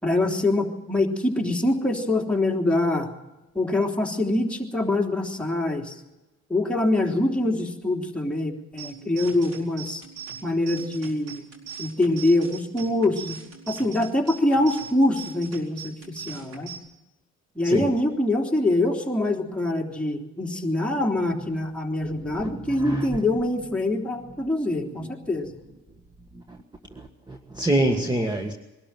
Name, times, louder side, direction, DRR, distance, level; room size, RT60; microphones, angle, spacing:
voice 1, 0.0-3.1 3.5-6.0 6.5-10.0 10.4-11.4 11.8-13.4 13.7-16.7 17.6-25.6, left 2 dB, 5° left, 3.5 m, -24 dB
sound 1, 8.8-16.8, right 7 dB, 60° right, 4.6 m, -41 dB
voice 2, 22.1-23.2 25.0-25.1 26.3-26.6 26.9-28.5, right 1 dB, 15° right, 1.6 m, -27 dB
22.5 x 13.0 x 9.1 m
cardioid pair, 90°, 30 cm